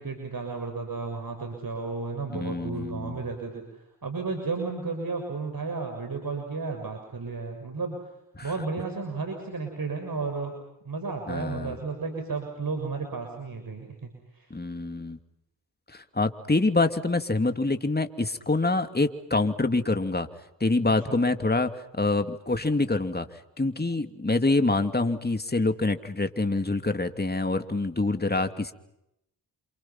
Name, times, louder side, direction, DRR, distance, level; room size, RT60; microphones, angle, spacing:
voice 1, 0.0-8.0 8.4-10.6 10.8-14.5 20.8-21.2, right 4 dB, 50° right, 4 dB, 6.5 m, -33 dB
voice 2, 2.3-3.2 8.3-8.5 11.3-11.8 14.5-15.2 15.9-20.3 20.6-23.3 23.6-28.7, left 2 dB, 20° left, 7 dB, 2.8 m, -26 dB
30.0 x 27.5 x 5.9 m, 0.83 s
cardioid pair, 45°, 43 cm